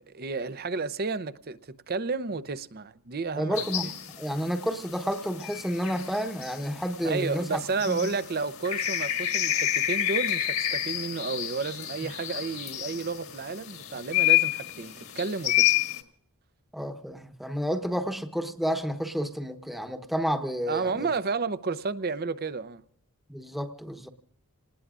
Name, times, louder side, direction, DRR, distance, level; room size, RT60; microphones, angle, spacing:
voice 1, 0.0-1.6 1.9-3.6 7.0-15.7 20.7-22.8, right 4 dB, 45° right, 0.6 m, -31 dB
voice 2, 3.4-7.6 7.9-8.1 12.0-12.1 16.7-21.1 23.3-24.1, equal, ahead, 1.0 m, -30 dB
sound 1, 3.6-16.0, left 12 dB, 65° left, 1.9 m, -29 dB
28.0 x 19.5 x 2.5 m
head